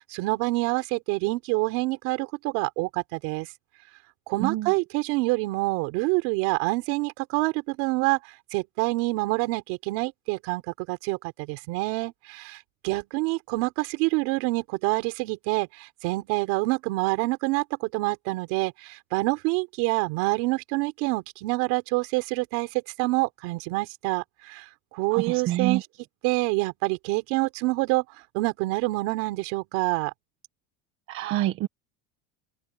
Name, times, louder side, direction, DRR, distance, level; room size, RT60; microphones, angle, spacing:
voice 1, 0.0-3.5 4.3-8.2 8.5-12.6 12.8-24.6 24.9-25.9 26.2-28.0 28.3-30.1, right 24 dB, 65° right, 4.6 m, -27 dB
voice 2, 4.4-4.7 25.1-25.8 31.1-31.7, right 14 dB, 45° right, 1.5 m, -27 dB
open air
cardioid pair, 165°, 30 cm